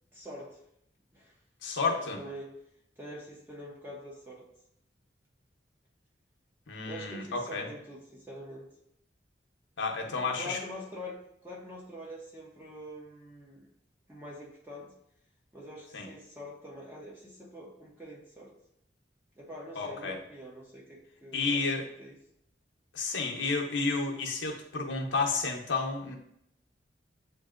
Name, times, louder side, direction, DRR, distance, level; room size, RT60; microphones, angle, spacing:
voice 1, 0.1-0.6 1.1-1.3 1.8-2.5 3.0-4.4 6.8-8.7 10.2-13.7 14.1-14.9 15.5-18.5 19.4-21.7 22.0-22.2, equal, 10° right, -4 dB, 0.7 m, -45 dB
voice 2, 1.6-2.2 6.7-7.7 9.8-10.6 15.9-16.1 19.8-20.2 21.3-21.9 22.9-26.2, left 4 dB, 90° left, 1 dB, 0.7 m, -31 dB
7.5 x 2.6 x 2.4 m, 0.73 s
head